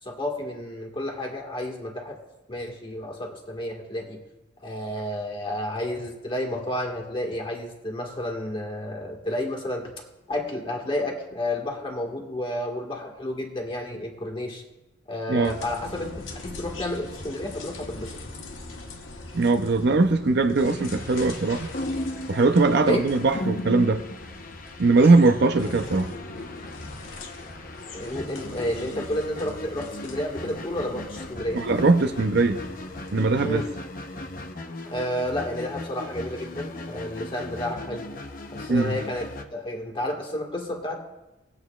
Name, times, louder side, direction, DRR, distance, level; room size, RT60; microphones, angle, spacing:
voice 1, 0.0-2.2 2.5-4.2 4.6-9.9 10.3-14.6 15.1-18.1 22.8-23.1 27.9-31.6 33.4-33.7 34.9-38.0 38.5-41.0, left 1 dB, 25° left, 1 dB, 1.6 m, -31 dB
sound 1, 15.4-33.3, left 2 dB, 75° left, 1.3 m, -41 dB
voice 2, 19.3-21.7 22.3-24.0 24.8-26.1 31.5-32.6 33.1-33.6 38.7-39.0, right 3 dB, 55° right, 8 dB, 0.6 m, -20 dB
sound 2, 20.6-39.4, left 1 dB, 45° left, 0.8 m, -37 dB
19.0 x 8.0 x 2.4 m, 0.97 s
head